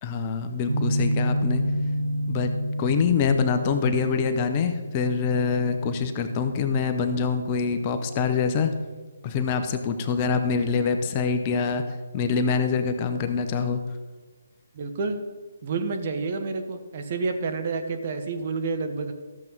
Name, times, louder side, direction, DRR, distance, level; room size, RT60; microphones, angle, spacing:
voice 1, 0.0-1.6 2.3-2.5 2.8-8.7 9.2-11.8 12.1-13.8, left 5 dB, 30° left, 7 dB, 0.8 m, -25 dB
sound 1, 0.7-9.4, equal, 65° right, 1.4 m, -30 dB
voice 2, 14.7-15.2 15.6-19.1, right 4 dB, 40° right, 6 dB, 1.1 m, -29 dB
13.5 x 7.3 x 3.9 m, 1.4 s
figure-of-eight pair, 145°, 0 cm